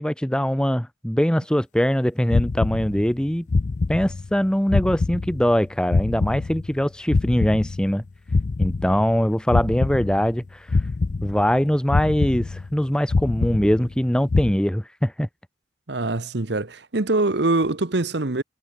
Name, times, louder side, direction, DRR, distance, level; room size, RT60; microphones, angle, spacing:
voice 1, 0.0-3.5 3.9-8.0 8.6-10.7 11.2-15.3, equal, 5° left, 0.7 m, -22 dB
sound 1, 2.3-3.2 3.5-4.4 4.7-6.8 7.1-9.2 9.5-10.4 10.7-11.6 11.9-12.8 13.1-14.0 14.3-14.5, left 3 dB, 40° left, 0.4 m, -25 dB
voice 2, 15.9-18.4, right 2 dB, 60° right, 1.1 m, -23 dB
head